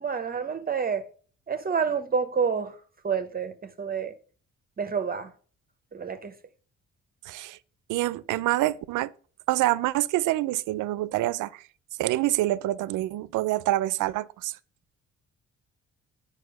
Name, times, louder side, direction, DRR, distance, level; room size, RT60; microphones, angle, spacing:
voice 1, 0.0-1.1 1.5-2.7 3.0-4.1 4.8-5.3 5.9-6.3, right 6 dB, 30° right, 0.7 m, -28 dB
voice 2, 7.3-7.6 7.9-9.1 9.5-11.6 12.0-14.5, right 16 dB, 85° right, 0.5 m, -26 dB
8.1 x 5.4 x 6.3 m
cardioid pair, 90°, 30 cm